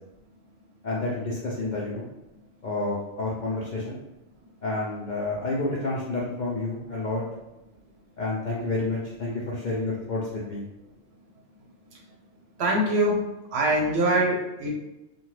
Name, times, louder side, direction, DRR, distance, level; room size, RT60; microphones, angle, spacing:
voice 1, 0.8-2.1 2.6-4.0 4.6-7.2 8.2-10.6, left 2 dB, 60° left, -5 dB, 0.5 m, -29 dB
voice 2, 12.6-13.2 13.5-14.8, right 1 dB, 65° right, -1 dB, 0.8 m, -23 dB
2.8 x 2.2 x 3.1 m, 0.99 s
omnidirectional pair, 1.3 m